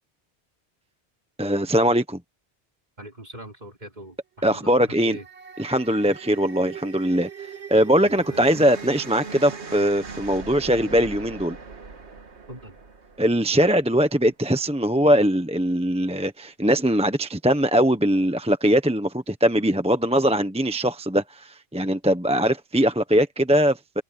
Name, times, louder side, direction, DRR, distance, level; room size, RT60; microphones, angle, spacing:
voice 1, 1.4-2.2 4.4-5.2 5.6-7.3 7.7-11.6 13.2-24.0, equal, 5° right, 0.9 m, -21 dB
voice 2, 3.0-5.2 8.1-8.5 12.5-12.8, right 1 dB, 40° right, 4.0 m, -42 dB
sound 1, 4.8-14.1, right 5 dB, 80° right, 1.9 m, -40 dB
omnidirectional pair, 1.1 m